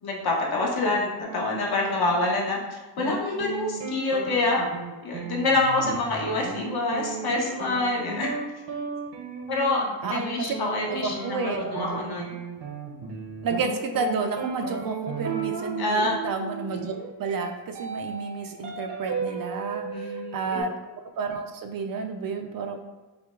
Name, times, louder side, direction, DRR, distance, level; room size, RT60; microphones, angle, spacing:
voice 1, 0.0-4.6 5.0-8.4 9.5-12.3 15.8-16.1 19.8-20.6, left 2 dB, 60° left, -2 dB, 1.2 m, -26 dB
sound 1, 1.2-2.7 3.0-20.6, right 5 dB, 70° right, 1.0 m, -35 dB
voice 2, 10.0-10.5 10.9-12.2 13.4-22.8, right 4 dB, 50° right, 5 dB, 0.5 m, -31 dB
5.7 x 2.2 x 3.7 m, 1.2 s
cardioid pair, 115°, 44 cm